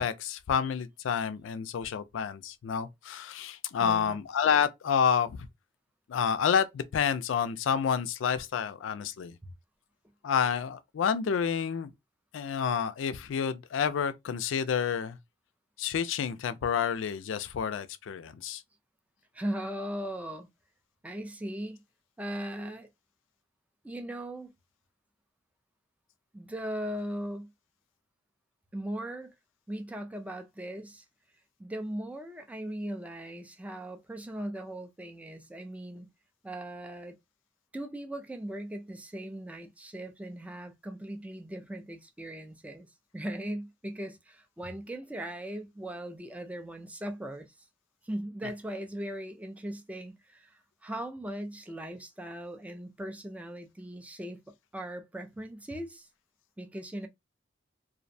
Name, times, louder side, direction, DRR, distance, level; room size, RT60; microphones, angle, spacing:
voice 1, 0.0-5.5 6.1-9.4 10.2-11.9 12.3-15.2 15.8-18.6, left 7 dB, 70° left, 0.3 m, -29 dB
voice 2, 3.8-4.2 9.4-9.5 19.3-20.5 21.0-21.8 22.2-22.9 23.8-24.5 26.3-27.5 28.7-29.3 29.7-31.0 31.6-36.1 36.4-37.2 37.7-42.9 43.1-47.5 48.0-54.4 54.7-56.1 56.6-57.1, right 1 dB, 5° right, 0.3 m, -38 dB
2.5 x 2.0 x 2.6 m
head